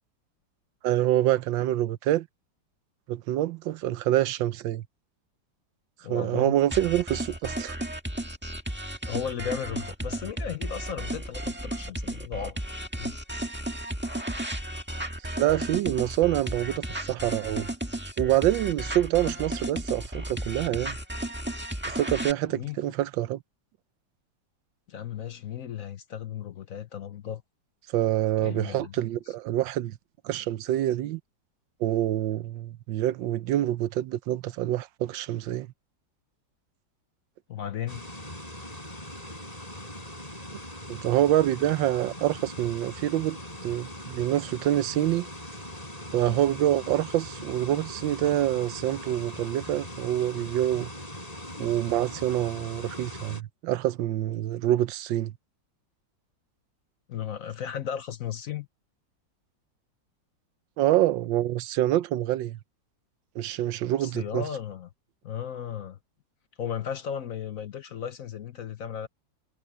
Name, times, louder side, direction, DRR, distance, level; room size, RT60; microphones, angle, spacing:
voice 1, 0.8-2.3 3.1-4.8 6.1-7.8 15.4-17.7 18.2-21.0 21.9-23.4 27.9-30.0 30.2-31.2 31.8-35.7 40.9-45.3 46.1-50.9 51.6-55.3 60.8-62.6 63.4-64.4, right 13 dB, 85° right, 1.4 m, -26 dB
voice 2, 6.0-6.6 9.1-12.6 13.0-13.2 22.5-22.8 24.9-27.4 28.4-28.9 37.5-38.0 46.3-46.4 51.6-51.8 57.1-58.7 64.0-64.9 65.2-66.0 66.6-69.1, left 9 dB, 55° left, 1.0 m, -35 dB
sound 1, 6.7-22.3, right 1 dB, 5° right, 1.6 m, -34 dB
sound 2, 37.9-53.4, left 1 dB, 20° left, 7.3 m, -41 dB
omnidirectional pair, 2.0 m